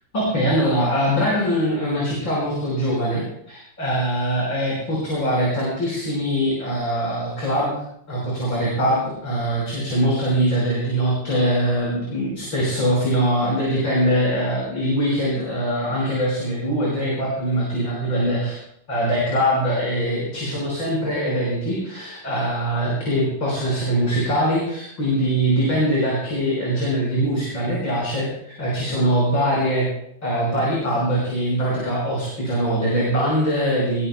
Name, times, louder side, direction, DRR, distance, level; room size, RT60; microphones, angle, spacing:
voice 1, 0.1-7.7 8.1-18.6 18.9-29.9 30.2-34.1, equal, 85° left, -5 dB, 6.4 m, -22 dB
21.5 x 21.0 x 2.3 m, 0.72 s
omnidirectional pair, 2.0 m